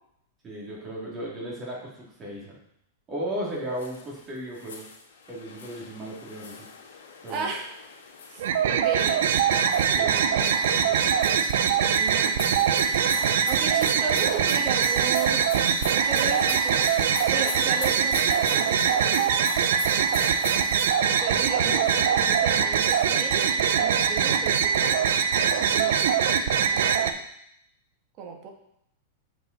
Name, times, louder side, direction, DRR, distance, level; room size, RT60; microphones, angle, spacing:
voice 1, 0.4-2.6 3.1-4.9 5.3-7.5 10.0-11.1 21.6-21.7, equal, 25° right, -3 dB, 2.4 m, -36 dB
sound 1, 3.7-4.2 4.5-10.1 10.4-20.9, left 5 dB, 75° left, 1.9 m, -41 dB
voice 2, 7.3-7.7 8.3-8.4 8.7-9.2 11.7-12.9 13.4-15.5 15.9-19.4 21.0-25.0 25.4-26.1 26.5-27.1 28.2-28.5, right 5 dB, 40° right, 2 dB, 1.6 m, -35 dB
sound 2, 8.4-27.1, right 7 dB, 75° right, 0.6 m, -23 dB
7.8 x 5.3 x 4.0 m, 0.74 s
hypercardioid pair, 125°, 0 cm